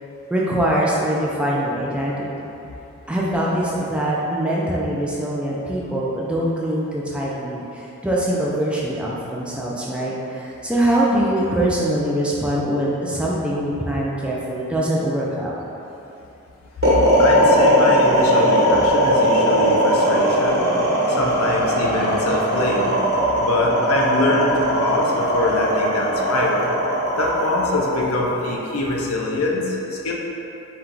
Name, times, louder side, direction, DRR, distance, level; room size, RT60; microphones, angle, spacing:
voice 1, 0.3-2.5 3.1-15.6, right 1 dB, 5° right, -6 dB, 0.3 m, -23 dB
sound 1, 16.8-29.1, equal, 50° right, 1.1 m, -18 dB
voice 2, 17.2-20.7 21.1-23.0 23.4-26.8 27.2-30.1, left 2 dB, 75° left, -2 dB, 0.6 m, -24 dB
4.3 x 2.3 x 3.8 m, 2.9 s
head